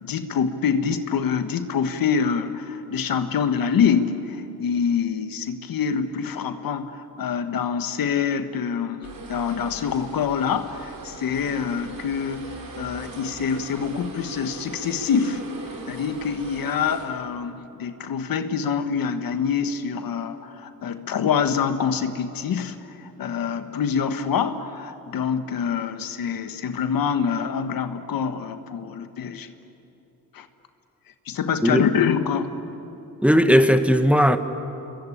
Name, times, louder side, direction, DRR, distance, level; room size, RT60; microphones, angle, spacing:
voice 1, 0.0-12.4 12.8-15.4 15.9-29.5 30.3-30.5 31.2-32.5, left 7 dB, 70° left, 1.5 m, -25 dB
sound 1, 9.0-17.1, right 3 dB, 65° right, 5.2 m, -40 dB
voice 2, 33.2-34.4, equal, 5° right, 1.2 m, -17 dB
28.0 x 22.5 x 8.7 m
cardioid pair, 85°, 36 cm